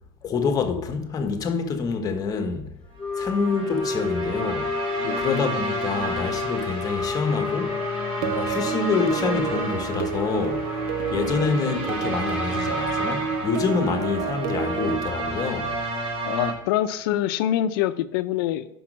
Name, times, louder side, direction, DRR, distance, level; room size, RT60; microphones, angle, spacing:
voice 1, 0.2-2.7 3.2-4.8 5.2-7.8 8.2-10.8 11.1-15.8, left 5 dB, 30° left, 1.1 m, -26 dB
Wind instrument woodwind instrument, 3.0-8.6, left 4 dB, 10° left, 0.5 m, -31 dB
sound 1, 3.0-16.5, right 1 dB, 45° right, 2.7 m, -31 dB
sound 2, 8.2-15.0, right 7 dB, 70° right, 0.6 m, -30 dB
voice 2, 16.3-18.7, left 12 dB, 75° left, 0.5 m, -25 dB
5.8 x 5.4 x 6.1 m
supercardioid pair, 125°, 12 cm